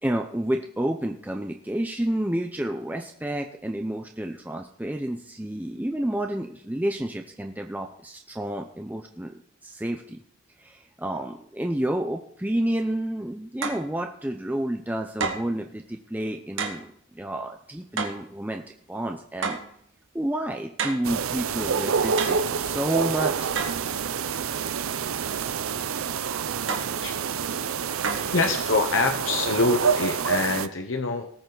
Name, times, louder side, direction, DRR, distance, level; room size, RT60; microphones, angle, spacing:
voice 1, 0.0-10.2 10.6-18.6 18.9-19.6 20.1-23.5, right 1 dB, 10° right, 3 dB, 0.6 m, -30 dB
sound 1, 13.6-13.9 15.2-15.6 16.6-16.8 18.0-18.3 19.4-19.7 20.8-21.1 22.2-22.5 23.5-23.8 26.7-27.0 28.0-28.4, right 4 dB, 65° right, 1.5 m, -30 dB
sound 2, 21.0-30.7, right 6 dB, 85° right, 0.6 m, -27 dB
voice 2, 28.3-31.3, left 3 dB, 70° left, 5 dB, 1.0 m, -25 dB
19.0 x 6.8 x 3.9 m, 0.66 s
head